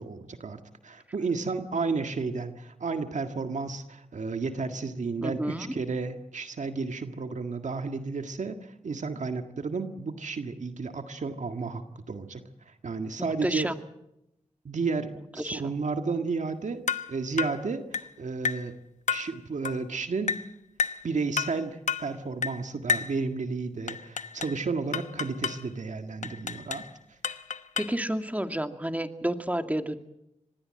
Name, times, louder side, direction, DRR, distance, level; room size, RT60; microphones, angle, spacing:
voice 1, 0.0-11.8 12.1-13.7 14.7-16.8 17.1-18.7 19.1-20.4 21.0-27.2, right 4 dB, 80° right, 7 dB, 1.8 m, -32 dB
voice 2, 5.2-5.7 13.2-13.8 15.4-15.7 27.8-30.0, right 1 dB, 10° right, 7 dB, 2.3 m, -30 dB
sound 1, 16.9-17.1 17.4-17.6 17.9-18.1 18.4-18.7 19.1-19.3 19.6-19.8 20.3-20.5 20.8-21.0 21.4-21.6 21.9-22.1 22.4-22.6 22.9-23.2 23.9-24.6 24.9-25.6 26.2-26.9 27.2-28.0, left 6 dB, 80° left, 1.0 m, -31 dB
25.5 x 20.5 x 7.7 m, 0.84 s
cardioid pair, 45°, 12 cm